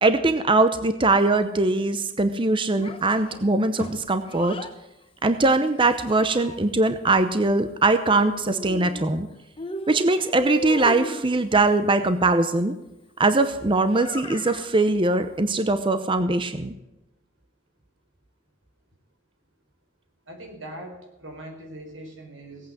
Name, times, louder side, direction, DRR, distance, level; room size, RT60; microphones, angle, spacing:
voice 1, 0.0-4.6 5.2-9.3 9.9-12.8 13.2-16.7, right 2 dB, 25° right, 10 dB, 0.8 m, -21 dB
Child speech kid speaking, 2.8-4.8 5.7-6.9 8.0-9.2 9.6-11.3 13.8-14.7, left 1 dB, 30° left, 1.1 m, -36 dB
voice 2, 20.3-22.7, right 1 dB, 90° right, 3 dB, 4.6 m, -41 dB
18.0 x 8.6 x 7.8 m, 0.97 s
head